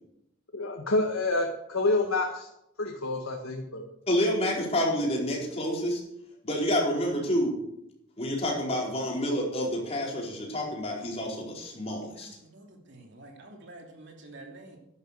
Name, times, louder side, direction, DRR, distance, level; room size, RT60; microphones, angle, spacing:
voice 1, 0.5-2.5 2.8-3.8, left 2 dB, 90° left, 1 dB, 1.8 m, -28 dB
voice 2, 4.1-6.0 6.4-7.6 8.2-12.3, equal, 30° left, -2 dB, 4.5 m, -28 dB
voice 3, 12.0-14.8, right 2 dB, 60° right, 1 dB, 2.9 m, -49 dB
11.5 x 11.5 x 6.8 m, 0.81 s
head